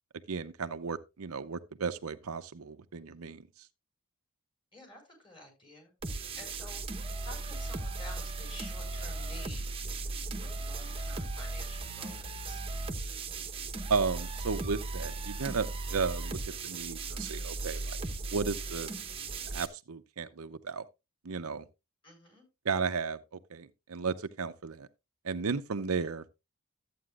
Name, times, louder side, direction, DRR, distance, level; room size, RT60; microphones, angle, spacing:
voice 1, 0.3-3.4 13.9-18.0 18.3-18.9 19.5-20.8 21.2-21.6 22.6-23.2 23.5-24.9 25.2-26.2, right 5 dB, 75° right, 0.7 m, -34 dB
voice 2, 4.7-5.9 6.3-6.8 7.2-12.6 22.0-22.4, left 1 dB, 25° left, 4.9 m, -51 dB
sound 1, 6.0-19.7, right 3 dB, 25° right, 0.9 m, -37 dB
13.0 x 8.6 x 2.4 m
head